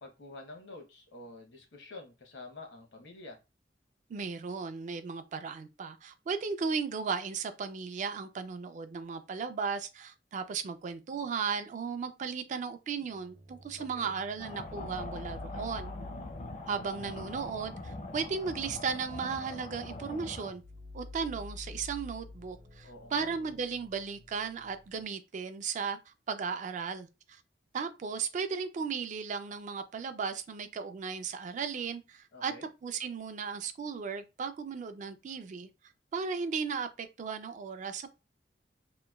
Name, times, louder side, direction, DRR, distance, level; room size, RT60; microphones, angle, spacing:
voice 1, 0.0-3.4 13.9-14.2 22.8-23.6 32.3-32.7, left 2 dB, 75° left, 0.9 m, -48 dB
voice 2, 4.1-15.9 16.7-20.6 20.9-27.4 27.7-35.7 36.1-38.1, right 5 dB, 45° right, 0.3 m, -36 dB
sound 1, 13.1-25.0, left 2 dB, 85° right, 0.7 m, -49 dB
sound 2, 14.4-20.5, left 2 dB, 40° left, 0.5 m, -43 dB
2.9 x 2.2 x 2.2 m
head